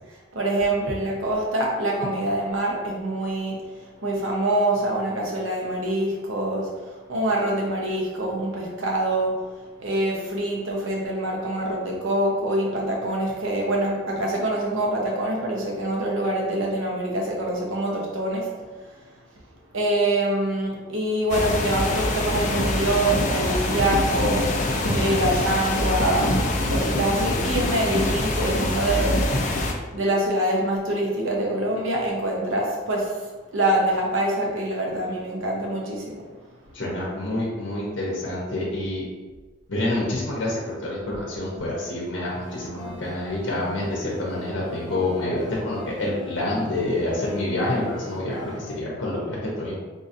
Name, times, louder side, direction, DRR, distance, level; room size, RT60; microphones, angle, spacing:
voice 1, 0.1-9.4 9.8-18.5 18.9-19.0 19.7-24.7 24.9-29.3 29.6-33.3 33.5-36.2, right 1 dB, 70° right, -2 dB, 0.8 m, -25 dB
sound 1, 21.3-29.7, left 1 dB, 35° left, 0.3 m, -24 dB
voice 2, 36.7-39.0 39.7-49.7, left 1 dB, 60° left, -4 dB, 0.7 m, -27 dB
sound 2, 42.2-48.7, left 1 dB, ahead, 0.9 m, -40 dB
3.8 x 2.7 x 2.5 m, 1.3 s
head